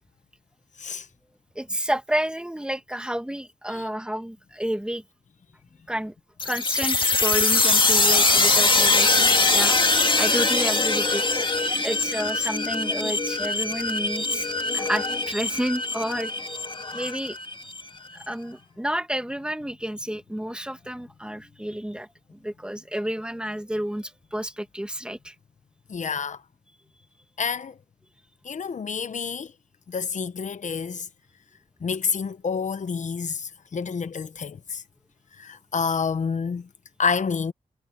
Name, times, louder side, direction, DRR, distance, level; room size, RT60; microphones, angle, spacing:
voice 1, 1.5-5.0 5.9-6.1 6.4-9.8 10.2-11.2 11.8-14.5 14.7-16.3 16.9-17.4 18.1-25.3, equal, 5° right, 1.4 m, -30 dB
sound 1, 6.4-17.8, left 3 dB, 40° left, 1.8 m, -22 dB
voice 2, 25.9-26.4 27.4-27.8 28.4-29.5 29.9-31.1 31.8-34.8 35.4-36.7 37.0-37.5, left 5 dB, 70° left, 1.0 m, -28 dB
wide cardioid pair, 115°, 13 cm